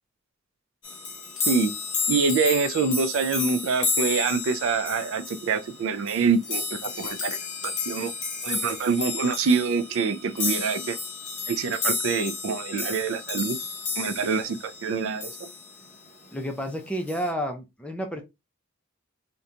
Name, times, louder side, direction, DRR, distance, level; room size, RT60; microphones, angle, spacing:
sound 1, 0.8-15.9 17.1-17.3, left 4 dB, 40° left, 0.7 m, -32 dB
voice 1, 2.1-7.4 7.6-8.1 8.4-11.0 11.5-13.6 14.0-15.5, right 5 dB, 70° right, 0.3 m, -25 dB
voice 2, 16.3-18.2, equal, 5° left, 0.4 m, -30 dB
2.8 x 2.2 x 2.4 m
head